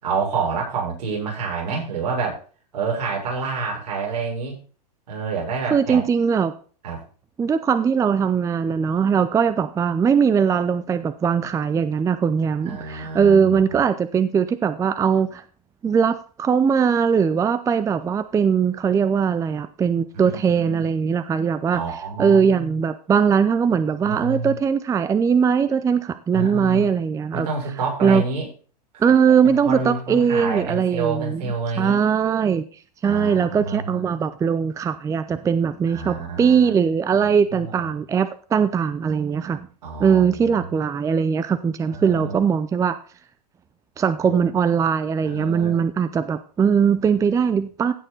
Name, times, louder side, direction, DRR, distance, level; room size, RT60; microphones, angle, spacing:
voice 1, 0.0-2.4 2.7-4.6 5.1-6.0 6.8-7.0 12.6-13.8 20.1-20.8 21.7-22.8 24.0-24.5 26.3-26.9 27.3-28.5 28.9-29.1 29.4-32.0 33.0-34.0 35.9-36.7 37.2-37.9 39.8-40.8 41.9-42.3 44.2-44.4 45.3-45.8, right 4 dB, 75° right, -1 dB, 6.4 m, -28 dB
voice 2, 5.7-6.5 7.4-15.4 15.8-21.8 22.2-27.5 28.0-28.2 29.0-31.4 31.8-32.6 33.0-39.7 40.0-43.0 44.0-47.9, right 6 dB, 15° right, 13 dB, 0.5 m, -20 dB
15.5 x 6.6 x 4.0 m, 0.39 s
hypercardioid pair, 115°, 21 cm